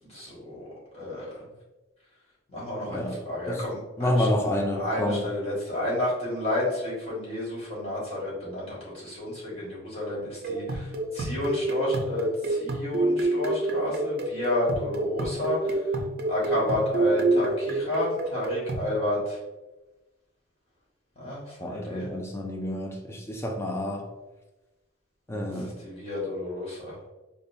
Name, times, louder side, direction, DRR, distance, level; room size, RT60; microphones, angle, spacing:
voice 1, 0.0-1.5 2.5-15.8 16.3-19.4 21.2-22.1 25.4-26.9, left 1 dB, 30° left, -7 dB, 1.5 m, -31 dB
voice 2, 2.9-3.2 3.5-3.6 4.0-5.2 21.6-24.1 25.3-25.7, left 1 dB, 15° left, 1 dB, 0.4 m, -28 dB
sound 1, 10.4-18.9, right 2 dB, 50° right, 0.4 m, -28 dB
5.0 x 2.2 x 2.6 m, 1.1 s
head